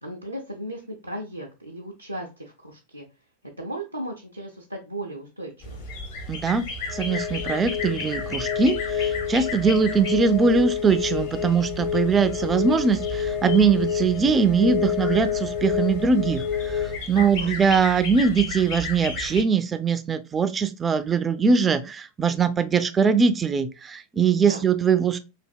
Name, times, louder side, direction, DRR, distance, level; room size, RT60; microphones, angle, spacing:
voice 1, 0.0-3.1 3.6-5.8 17.1-17.5 24.4-24.6, right 1 dB, 85° right, 0.4 m, -36 dB
sound 1, 5.6-19.4, left 2 dB, 50° left, 1.1 m, -35 dB
voice 2, 6.3-6.6 6.9-25.2, right 5 dB, 20° right, 0.3 m, -22 dB
sound 2, 6.9-17.0, left 8 dB, 35° left, 0.7 m, -29 dB
3.3 x 2.5 x 2.2 m
figure-of-eight pair, 90°, 0 cm